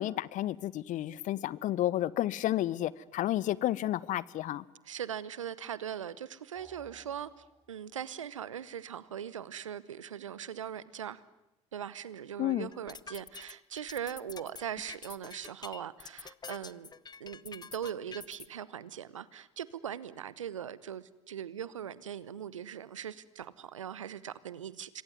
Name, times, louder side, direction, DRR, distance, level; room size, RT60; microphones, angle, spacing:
voice 1, 0.0-4.6 12.4-12.7, left 14 dB, 55° left, 1.0 m, -31 dB
voice 2, 4.8-11.2 11.7-16.9 17.2-25.0, right 9 dB, 85° right, 1.0 m, -40 dB
sound 1, 6.5-8.1, right 1 dB, 5° right, 7.6 m, -60 dB
sound 2, 12.7-18.5, left 5 dB, 25° left, 0.9 m, -47 dB
26.5 x 22.5 x 9.6 m
hypercardioid pair, 60°, 16 cm